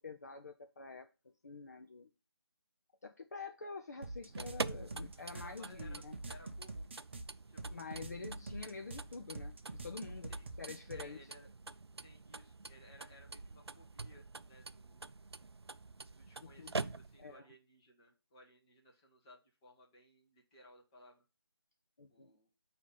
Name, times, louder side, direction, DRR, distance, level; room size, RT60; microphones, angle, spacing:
voice 1, 0.0-2.1 3.0-6.1 7.7-11.2 16.4-16.9 17.2-17.5 22.0-22.3, left 4 dB, 40° left, 0.6 m, -47 dB
sound 1, 4.0-11.1, right 2 dB, 25° right, 0.6 m, -45 dB
sound 2, 4.2-17.4, right 3 dB, 85° right, 0.4 m, -46 dB
voice 2, 5.3-6.9 7.5-7.8 10.3-10.5 10.9-11.5 12.0-15.1 16.1-21.2 22.1-22.5, left 1 dB, 15° left, 1.1 m, -60 dB
8.2 x 2.8 x 5.3 m
figure-of-eight pair, 160°, 13 cm